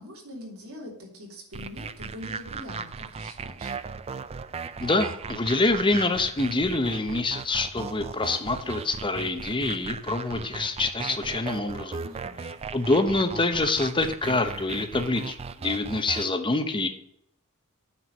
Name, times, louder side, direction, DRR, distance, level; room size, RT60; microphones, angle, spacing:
voice 1, 0.0-3.7 12.0-12.4, left 1 dB, 75° right, -3 dB, 3.2 m, -43 dB
sound 1, 1.5-16.3, right 5 dB, 30° right, 0.4 m, -37 dB
voice 2, 4.8-12.0 12.7-16.9, left 2 dB, 25° left, 8 dB, 0.8 m, -26 dB
9.3 x 4.6 x 6.7 m, 0.72 s
head